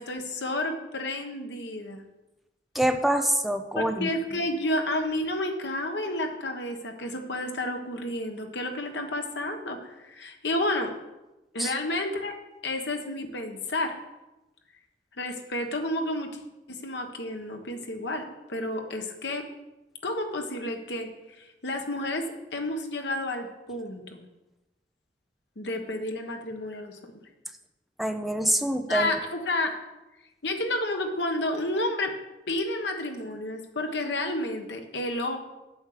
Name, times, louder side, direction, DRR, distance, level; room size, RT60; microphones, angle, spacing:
voice 1, 0.0-2.0 3.8-10.9 11.5-12.3 12.6-14.0 15.2-16.3 16.7-18.2 18.5-19.4 20.0-21.1 21.4-22.2 22.5-24.2 25.6-27.0 28.9-29.7 30.4-32.1 32.5-35.4, left 1 dB, 80° left, 4 dB, 1.4 m, -30 dB
voice 2, 2.7-4.4 11.6-11.7 28.0-29.2, right 1 dB, ahead, 6 dB, 0.6 m, -26 dB
8.0 x 7.2 x 6.7 m, 1.0 s
head